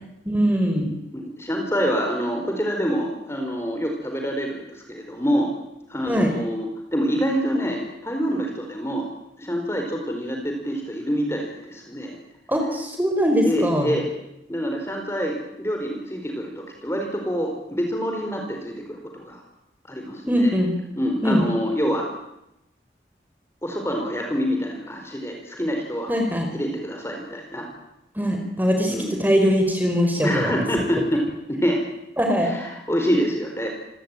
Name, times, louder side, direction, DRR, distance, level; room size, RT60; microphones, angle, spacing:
voice 1, 0.2-0.9 6.0-6.3 12.5-13.9 20.3-20.7 21.2-21.4 26.1-26.5 28.1-30.6 32.2-32.5, equal, 10° right, 3 dB, 5.0 m, -21 dB
voice 2, 1.1-5.5 5.9-9.1 9.4-12.2 13.4-14.1 14.5-19.4 19.9-20.5 21.0-22.1 23.6-26.1 26.5-27.7 28.9-29.1 30.2-31.8 32.4-33.7, equal, 15° left, 2 dB, 4.4 m, -26 dB
27.0 x 18.5 x 9.1 m, 0.86 s
head